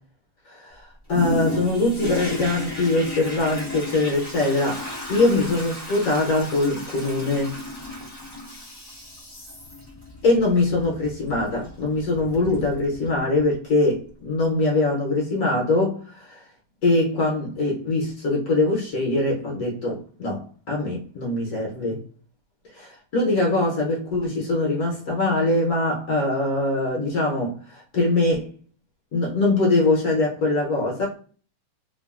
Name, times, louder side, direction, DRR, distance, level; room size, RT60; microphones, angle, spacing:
voice 1, 0.5-0.8 1.1-4.8 5.1-7.6 10.2-16.4 16.8-22.0 22.7-28.5 29.1-31.1, left 2 dB, 65° left, 1.2 m, -22 dB
Toilet flush, 1.1-13.5 14.1-14.2, left 2 dB, 25° left, 0.5 m, -35 dB
2.9 x 2.4 x 2.3 m
omnidirectional pair, 1.8 m